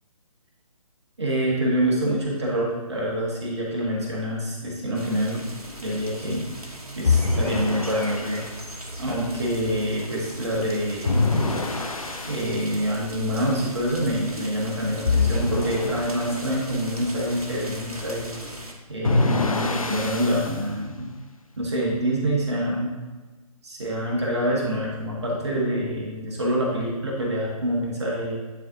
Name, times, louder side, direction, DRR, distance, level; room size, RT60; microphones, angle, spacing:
voice 1, 1.2-5.4 5.8-6.5 7.0-8.5 9.0-11.2 12.3-18.3 18.9-21.1 21.6-22.9 23.6-28.3, equal, 45° right, -3 dB, 1.7 m, -26 dB
sound 1, 4.9-18.7, right 1 dB, 80° right, 1.2 m, -39 dB
sound 2, 7.0-8.5 11.0-12.5 15.0-16.4 19.0-20.6, left 3 dB, 65° left, 0.8 m, -24 dB
10.0 x 4.3 x 2.9 m, 1.2 s
figure-of-eight pair, 145°, 19 cm